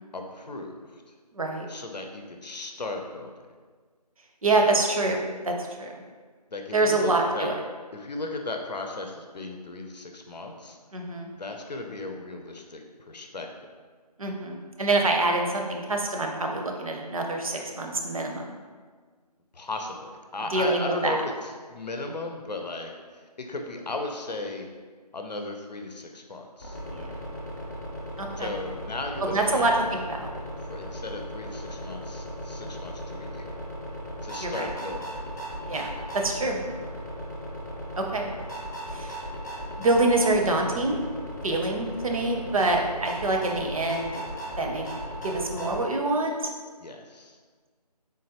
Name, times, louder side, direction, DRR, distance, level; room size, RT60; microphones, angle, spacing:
voice 1, 0.1-1.1 1.7-3.3 4.5-4.7 6.5-7.5 7.9-10.8 11.3-13.5 19.5-24.7 25.1-26.8 28.4-29.8 30.6-33.5 34.2-35.2 41.4-41.6 46.8-47.4, left 2 dB, 80° left, 3 dB, 0.6 m, -36 dB
voice 2, 1.3-1.7 4.4-6.0 6.7-7.6 10.9-11.3 14.2-18.5 20.5-21.2 26.9-27.1 28.2-28.5 29.2-29.7 30.1-30.3 32.6-32.7 34.4-34.7 35.7-36.6 38.0-38.2 38.9-39.2 39.8-41.0 41.4-44.2 44.5-44.9 45.2-46.5, right 2 dB, 55° right, 2 dB, 0.6 m, -26 dB
sound 1, 26.6-45.8, equal, 25° left, 0.5 m, -37 dB
3.8 x 3.1 x 2.8 m, 1.5 s
figure-of-eight pair, 160°, 21 cm